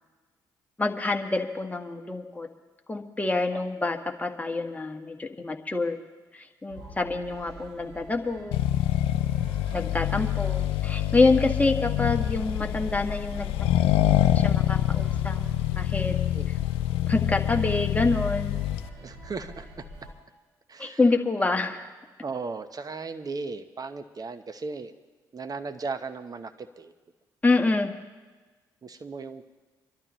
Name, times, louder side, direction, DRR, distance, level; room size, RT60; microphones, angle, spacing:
voice 1, 0.8-2.5 2.9-6.0 6.3-8.6 9.7-15.4 15.8-16.2 17.1-18.7 20.8-21.9 27.4-27.9, left 3 dB, 15° left, 4 dB, 1.5 m, -27 dB
sound 1, 6.7-20.1, right 2 dB, 75° right, 6.0 m, -44 dB
Accelerating revving vroom, 8.5-18.9, left 13 dB, 75° left, 0.5 m, -26 dB
voice 2, 19.0-19.7 20.7-21.0 22.2-24.9 25.3-26.9 28.8-29.4, right 4 dB, 40° right, 10 dB, 1.0 m, -36 dB
26.5 x 12.0 x 3.1 m, 1.3 s
hypercardioid pair, 45°, 10 cm